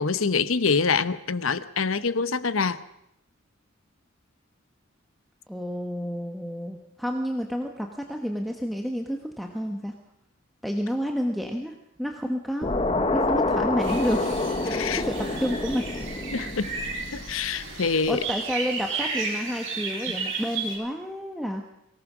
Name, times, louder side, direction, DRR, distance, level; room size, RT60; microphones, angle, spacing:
voice 1, 0.0-2.8 14.7-15.0 16.3-16.7 17.1-18.2 20.1-20.2, left 5 dB, 85° left, 14 dB, 0.9 m, -25 dB
voice 2, 5.5-9.9 10.6-12.7 13.1-14.4 14.8-15.8 17.9-21.6, equal, ahead, 2 dB, 1.2 m, -30 dB
sound 1, 12.6-17.9, left 2 dB, 25° left, 1.0 m, -28 dB
sound 2, 13.8-20.8, right 4 dB, 60° right, 7.7 m, -33 dB
23.5 x 18.0 x 6.2 m, 0.78 s
head